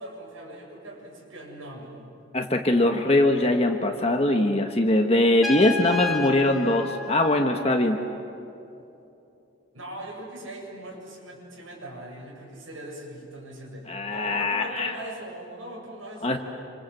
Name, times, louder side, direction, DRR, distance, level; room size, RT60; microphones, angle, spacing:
voice 1, 0.0-2.1 9.7-16.4, right 1 dB, 85° right, -1 dB, 7.7 m, -40 dB
voice 2, 2.3-8.0 13.9-15.0 16.2-16.4, left 1 dB, 30° left, 3 dB, 1.3 m, -22 dB
Trumpet, 5.4-8.1, left 4 dB, ahead, 2.6 m, -32 dB
27.0 x 27.0 x 7.9 m, 2.8 s
head